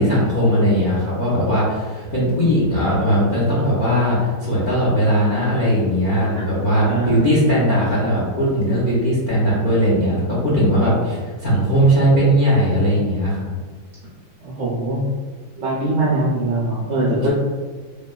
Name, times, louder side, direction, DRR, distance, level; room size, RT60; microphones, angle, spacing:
voice 1, 0.0-13.5, equal, 65° left, -8 dB, 0.5 m, -18 dB
voice 2, 6.8-7.6 14.4-15.0 15.6-17.3, right 2 dB, 70° right, -8 dB, 0.6 m, -22 dB
3.1 x 2.2 x 2.2 m, 1.4 s
omnidirectional pair, 1.8 m